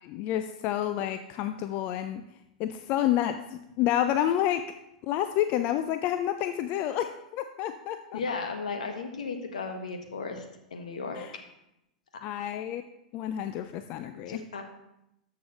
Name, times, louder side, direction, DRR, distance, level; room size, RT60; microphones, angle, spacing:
voice 1, 0.0-2.2 2.6-4.7 5.0-8.2 11.1-11.3 12.2-12.8 13.1-14.4, left 11 dB, 40° left, 10 dB, 0.4 m, -29 dB
voice 2, 8.1-10.4 10.7-11.2 14.1-14.6, left 4 dB, 65° left, 5 dB, 1.3 m, -35 dB
13.0 x 6.7 x 3.0 m, 0.85 s
figure-of-eight pair, 95°, 4 cm